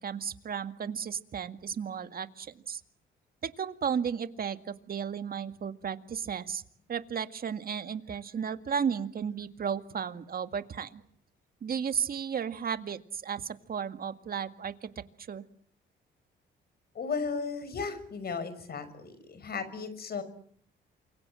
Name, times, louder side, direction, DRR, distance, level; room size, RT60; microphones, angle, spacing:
voice 1, 0.0-2.8 3.4-6.6 6.9-11.0 11.6-14.9 15.2-15.4, right 7 dB, 50° right, 10 dB, 2.1 m, -34 dB
voice 2, 16.9-20.2, left 5 dB, 50° left, 13 dB, 5.9 m, -35 dB
28.5 x 23.5 x 7.7 m, 0.63 s
cardioid pair, 90°, 20 cm